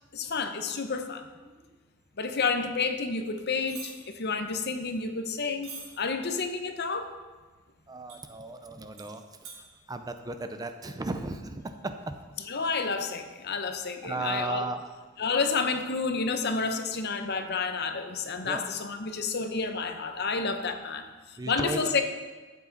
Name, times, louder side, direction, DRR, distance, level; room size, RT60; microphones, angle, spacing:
voice 1, 0.1-1.3 2.2-7.1 12.5-14.6 15.2-22.0, left 4 dB, 50° left, 7 dB, 0.7 m, -30 dB
sound 1, 3.6-3.9 5.6-5.9 8.1-8.2 9.0-9.1 9.4-9.6, right 5 dB, 75° right, 2.9 m, -42 dB
voice 2, 7.9-12.2 14.0-14.8 18.4-18.7 21.4-21.9, right 2 dB, 15° right, 7 dB, 0.4 m, -35 dB
12.5 x 8.3 x 4.0 m, 1.3 s
head